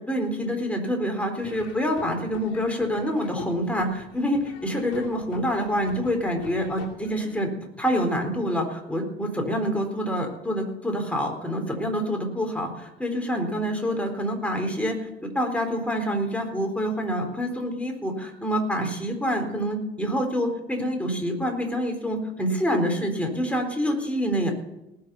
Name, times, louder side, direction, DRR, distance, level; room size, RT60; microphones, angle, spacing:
voice 1, 0.0-7.5 7.8-15.0 15.3-24.5, equal, 5° left, 2 dB, 4.1 m, -26 dB
Laughter / Drum, 1.4-7.4, left 7 dB, 55° left, 2.6 m, -43 dB
19.0 x 6.7 x 6.9 m, 0.89 s
figure-of-eight pair, 55°, 30 cm